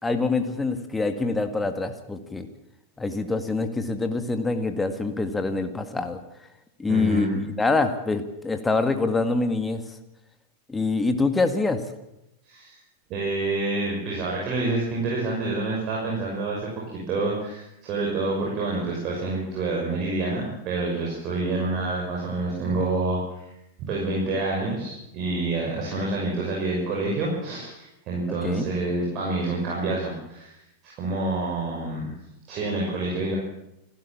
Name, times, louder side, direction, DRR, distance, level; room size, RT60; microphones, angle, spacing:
voice 1, 0.0-2.5 3.0-6.2 6.8-7.3 7.6-10.0 10.7-11.8 28.4-28.7, left 3 dB, 10° left, 7 dB, 2.0 m, -25 dB
voice 2, 6.9-7.5 12.4-12.8 13.1-23.5 23.9-32.1 32.5-33.4, right 2 dB, 40° right, -2 dB, 6.0 m, -28 dB
28.0 x 13.0 x 7.4 m, 0.86 s
figure-of-eight pair, 90°, 0 cm